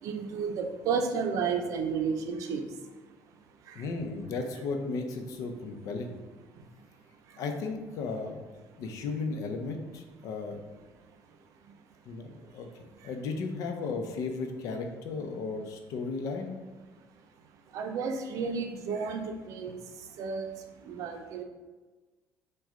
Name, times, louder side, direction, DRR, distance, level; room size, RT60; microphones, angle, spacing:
voice 1, 0.0-2.8 3.6-3.9 6.6-6.8 7.3-7.4 11.6-11.8 12.9-13.1 17.7-21.4, right 5 dB, 65° right, 5 dB, 0.6 m, -33 dB
voice 2, 3.7-6.2 7.4-8.4 8.8-10.6 12.1-16.6, left 4 dB, 70° left, 5 dB, 0.6 m, -35 dB
6.2 x 2.3 x 3.7 m, 1.3 s
cardioid pair, 125°, 6 cm